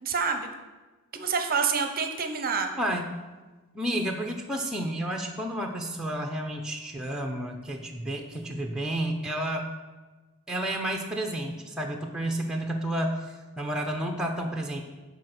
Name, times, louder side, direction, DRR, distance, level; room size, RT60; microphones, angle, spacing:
voice 1, 0.0-0.5 1.1-2.7, right 5 dB, 40° right, 6 dB, 0.7 m, -27 dB
voice 2, 2.8-3.2 3.7-9.7 10.5-14.8, right 1 dB, 5° right, 1 dB, 0.6 m, -31 dB
10.5 x 3.9 x 6.6 m, 1.2 s
head